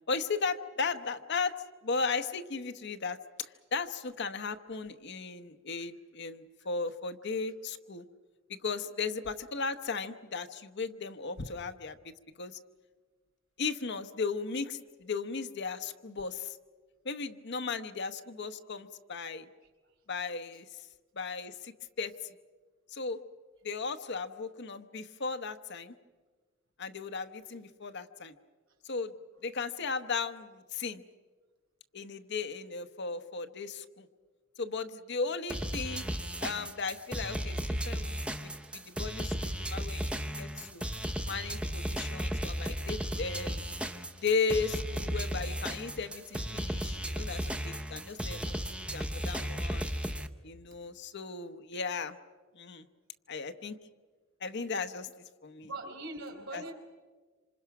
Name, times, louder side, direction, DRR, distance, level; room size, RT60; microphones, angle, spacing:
voice 1, 0.1-1.5 1.8-8.0 8.6-12.6 13.6-16.6 17.0-19.5 20.1-20.9 21.1-22.4 22.9-23.2 23.6-25.9 26.8-28.3 28.8-29.1 29.4-31.0 31.9-34.1 34.6-36.0 36.4-40.8 41.2-43.6 44.2-49.9 50.4-52.2 52.5-52.9 53.3-53.8 54.4-55.1 55.4-55.7 56.5-56.7, left 4 dB, 55° left, 9 dB, 1.0 m, -36 dB
sound 1, 35.5-50.3, equal, 5° right, 0.7 m, -35 dB
voice 2, 55.6-56.7, right 2 dB, 65° right, 3 dB, 4.5 m, -41 dB
26.5 x 26.5 x 5.9 m, 1.4 s
head